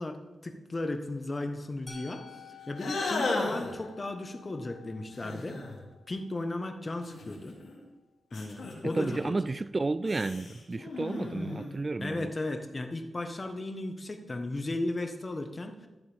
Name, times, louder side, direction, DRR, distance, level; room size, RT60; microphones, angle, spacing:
voice 1, 0.0-2.2 2.7-5.6 6.1-7.6 8.3-9.3 12.0-15.8, left 2 dB, 35° left, 1.3 m, -35 dB
Musical instrument, 1.9-7.8, left 6 dB, 50° left, 1.9 m, -53 dB
sound 1, 2.8-3.8 5.1-5.8 7.0-7.8 8.3-9.3 10.0-11.8, left 3 dB, 75° left, 2.7 m, -35 dB
voice 2, 8.9-12.3, right 3 dB, 35° right, 0.3 m, -32 dB
14.0 x 7.8 x 3.6 m
cardioid pair, 60°, 0 cm